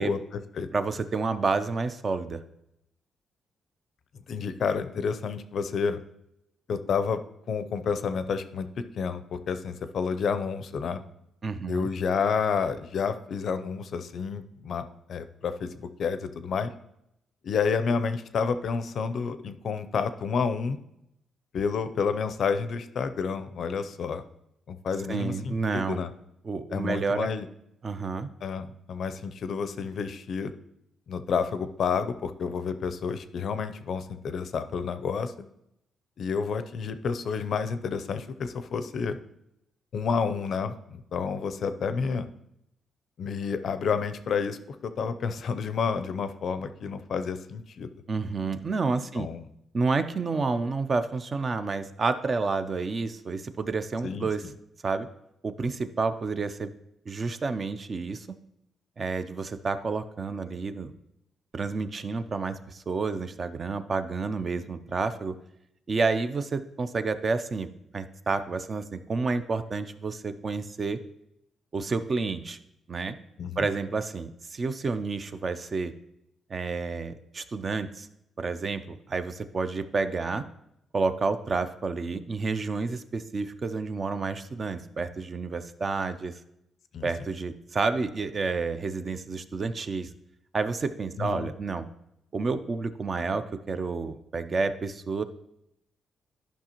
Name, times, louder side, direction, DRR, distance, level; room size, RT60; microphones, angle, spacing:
voice 1, 0.0-0.7 4.3-6.0 6.7-7.2 7.5-11.0 11.7-14.8 15.1-16.7 17.4-20.8 21.5-24.2 24.7-26.1 26.7-27.5 28.4-30.5 31.1-35.5 36.2-39.2 39.9-42.3 43.2-47.9 49.2-49.5 54.0-54.3 73.4-73.7 86.9-87.1 91.2-91.5, left 5 dB, 55° left, 11 dB, 0.5 m, -30 dB
voice 2, 0.7-2.4 11.4-11.9 25.1-26.0 26.4-27.3 27.8-28.3 48.1-49.3 49.7-54.4 54.8-55.1 55.4-56.7 57.1-58.3 59.0-60.9 61.5-65.4 65.9-71.0 71.7-72.6 72.9-73.1 73.6-75.9 76.5-78.1 78.4-80.4 80.9-86.4 87.0-90.1 90.5-91.9 92.3-95.2, right 4 dB, 35° right, 11 dB, 0.4 m, -30 dB
12.5 x 5.6 x 2.9 m, 0.81 s
cardioid pair, 145°, 0 cm